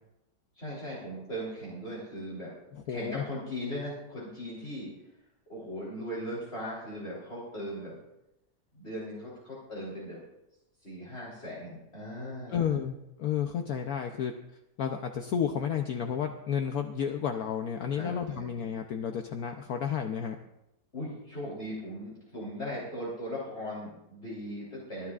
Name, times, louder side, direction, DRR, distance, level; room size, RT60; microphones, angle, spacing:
voice 1, 0.5-2.5 2.9-4.9 5.5-8.0 8.7-10.2 10.8-12.8 17.9-18.5 20.9-25.1, equal, 35° left, -7 dB, 4.0 m, -38 dB
voice 2, 2.7-3.2 12.5-14.3 14.8-20.4, left 8 dB, 65° left, 5 dB, 1.2 m, -31 dB
25.5 x 12.0 x 2.5 m, 0.89 s
omnidirectional pair, 1.8 m